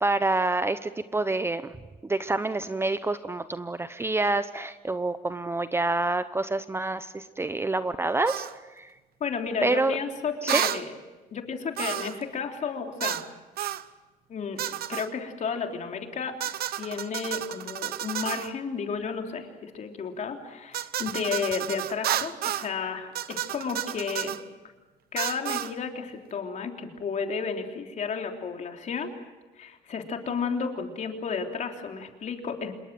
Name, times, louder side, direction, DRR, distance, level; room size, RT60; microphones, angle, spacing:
voice 1, 0.0-1.7 2.0-8.5 8.8-8.9 9.6-10.0 10.4-10.6, right 2 dB, 15° right, 12 dB, 0.8 m, -27 dB
sound 1, 8.3-8.5 10.5-10.8 11.8-12.2 13.0-13.3 13.6-13.8 14.6-15.1 16.4-18.5 20.7-22.7 23.1-24.4 25.2-25.7, right 12 dB, 65° right, 1.0 m, -31 dB
voice 2, 9.2-11.0 11.3-13.2 14.3-16.3 16.8-24.4 25.1-29.1 29.6-32.7, left 5 dB, 45° left, 3 dB, 3.5 m, -32 dB
27.0 x 22.0 x 7.7 m, 1.2 s
cardioid pair, 110°, 17 cm